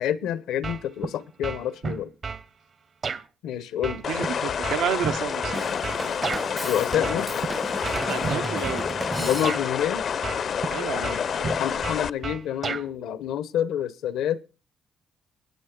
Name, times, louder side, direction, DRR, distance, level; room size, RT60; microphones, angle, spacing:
voice 1, 0.0-2.1 3.4-4.0 6.6-7.3 9.2-10.1 10.9-11.2 11.6-14.4, left 10 dB, 85° left, 0.8 m, -28 dB
sound 1, 0.6-1.1 1.4-2.4 3.0-3.2 3.8-6.5 7.0-7.5 7.8-8.8 9.4-9.6 10.2-10.7 11.0-12.9, right 5 dB, 50° right, 0.8 m, -32 dB
sound 2, 4.0-12.1, left 7 dB, 55° left, 0.5 m, -29 dB
voice 2, 4.1-5.7 8.1-8.9 10.7-11.2, right 9 dB, 90° right, 0.8 m, -30 dB
Drum kit / Drum, 5.5-9.9, right 2 dB, 20° right, 0.5 m, -35 dB
22.0 x 7.7 x 3.7 m
cardioid pair, 90°, 0 cm